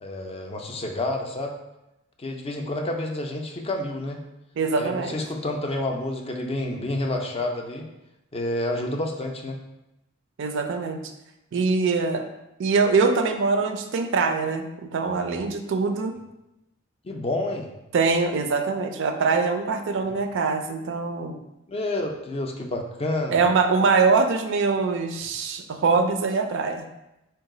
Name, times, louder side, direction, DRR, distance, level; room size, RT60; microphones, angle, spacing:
voice 1, 0.0-1.6 2.2-4.2 4.8-7.9 8.3-9.6 17.0-17.7 20.0-20.1 21.7-23.4, left 1 dB, 30° left, 2 dB, 0.4 m, -29 dB
voice 2, 4.6-5.1 10.4-11.0 11.5-12.2 12.6-16.1 17.9-21.4 23.3-26.8, right 4 dB, 65° right, 6 dB, 0.4 m, -23 dB
3.9 x 2.3 x 3.7 m, 0.91 s
head